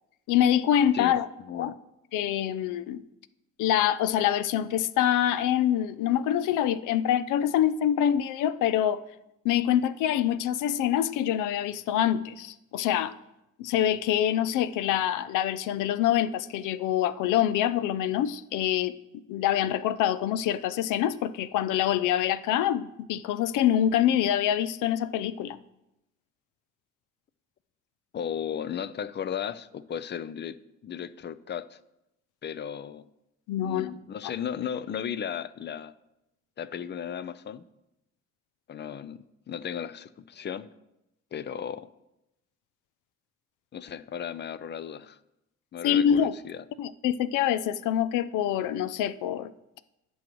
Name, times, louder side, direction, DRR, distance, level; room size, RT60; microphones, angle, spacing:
voice 1, 0.3-1.3 1.6-1.7 2.1-3.0 3.6-9.0 9.4-13.2 13.6-25.6 33.5-33.9 45.8-46.3 46.8-49.5, left 10 dB, 90° left, 0.5 m, -25 dB
voice 2, 28.1-30.6 30.8-31.8 32.4-33.1 33.6-35.9 36.6-37.7 38.7-39.2 39.5-40.7 41.3-41.9 43.7-45.2 45.7-46.6, left 8 dB, 35° left, 0.5 m, -35 dB
15.5 x 6.3 x 3.1 m
cardioid pair, 90°, 30 cm